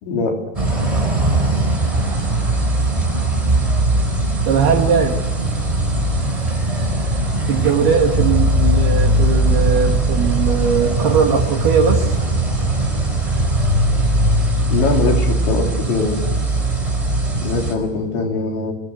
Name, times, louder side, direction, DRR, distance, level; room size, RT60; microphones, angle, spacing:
voice 1, 0.0-0.4 14.7-16.2 17.4-18.7, left 4 dB, 80° left, 2 dB, 5.8 m, -21 dB
sound 1, 0.5-17.7, right 1 dB, 10° right, 3.6 m, -19 dB
voice 2, 4.5-5.2 7.5-12.1, right 6 dB, 65° right, 2 dB, 3.7 m, -19 dB
26.5 x 21.0 x 8.0 m, 1.2 s
omnidirectional pair, 5.2 m